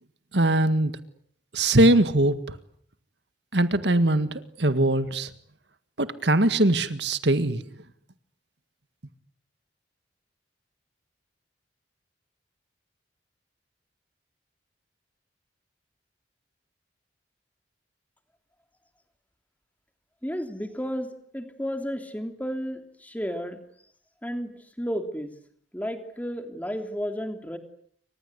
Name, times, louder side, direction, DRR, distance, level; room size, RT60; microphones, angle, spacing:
voice 1, 0.3-0.9 1.5-2.6 3.5-5.3 6.0-7.6, right 1 dB, 70° right, 12 dB, 1.8 m, -21 dB
voice 2, 20.2-21.1 21.3-23.6 24.2-24.5 24.8-25.3 25.7-27.6, equal, 10° left, 7 dB, 3.2 m, -32 dB
29.5 x 25.0 x 8.1 m, 0.62 s
head